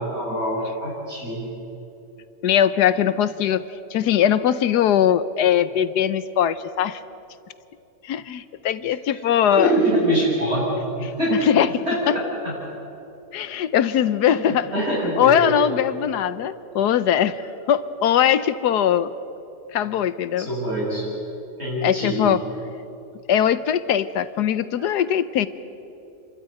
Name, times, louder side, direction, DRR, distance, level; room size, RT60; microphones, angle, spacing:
voice 1, 0.0-1.5 9.1-9.2 9.5-10.7 11.0-11.5 11.9-12.0 14.2-14.4 14.7-15.5 20.4-21.1 21.6-22.3 24.8-24.9, right 1 dB, 35° right, -9 dB, 7.9 m, -24 dB
voice 2, 2.4-3.7 3.9-7.0 8.0-9.8 11.0-12.2 13.3-14.7 15.2-19.1 19.7-20.5 21.8-22.4 23.3-25.5, left 9 dB, 70° left, 15 dB, 1.2 m, -21 dB
29.0 x 13.0 x 9.8 m, 2.8 s
omnidirectional pair, 1.9 m